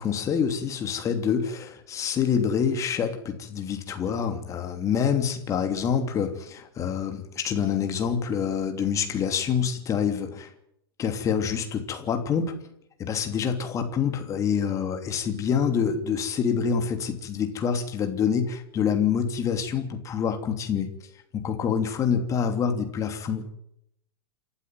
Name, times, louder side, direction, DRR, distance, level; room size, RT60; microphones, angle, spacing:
voice 1, 0.0-10.5 11.0-12.5 13.0-20.9 21.3-23.5, left 7 dB, 25° left, 6 dB, 3.0 m, -26 dB
29.0 x 12.0 x 9.4 m, 0.77 s
figure-of-eight pair, 100°, 13 cm